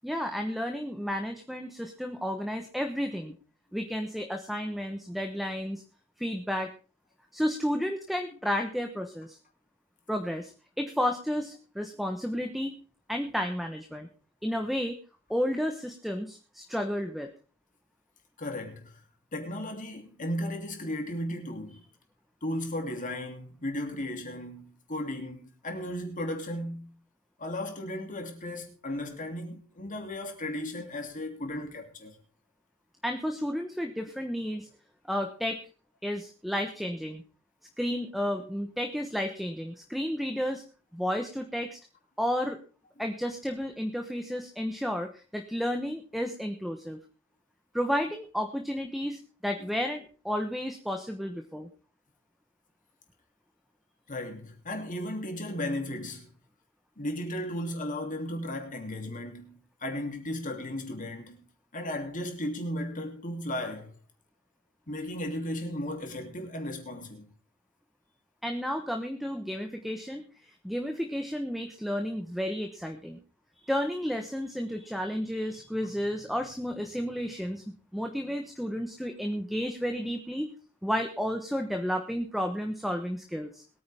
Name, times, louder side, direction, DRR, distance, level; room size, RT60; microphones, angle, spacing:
voice 1, 0.0-3.3 3.7-5.8 6.2-6.7 7.3-9.4 10.1-10.5 10.8-12.7 13.1-14.1 14.4-15.0 15.3-17.3 33.0-34.7 35.1-35.6 36.0-37.2 37.8-40.6 40.9-41.8 42.2-42.6 43.0-47.0 47.7-51.7 68.4-70.2 70.6-73.2 73.7-77.6 77.9-80.5 80.8-83.6, equal, ahead, 1.1 m, -32 dB
voice 2, 18.4-18.9 19.3-21.8 22.4-26.9 27.4-32.2 54.1-56.3 57.0-61.4 61.7-63.9 64.9-67.3, left 1 dB, 40° left, 2.9 m, -35 dB
21.5 x 9.5 x 3.6 m
head